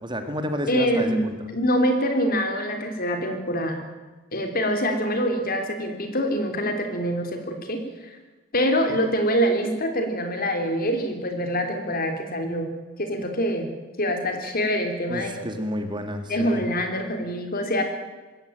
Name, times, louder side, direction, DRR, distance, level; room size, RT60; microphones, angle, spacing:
voice 1, 0.0-1.5 15.1-16.6, equal, 20° right, 7 dB, 1.9 m, -30 dB
voice 2, 0.7-3.8 4.3-8.2 8.5-12.7 13.0-13.7 14.0-15.5 16.3-17.8, equal, 45° left, 5 dB, 3.5 m, -25 dB
20.0 x 16.0 x 9.2 m, 1.2 s
head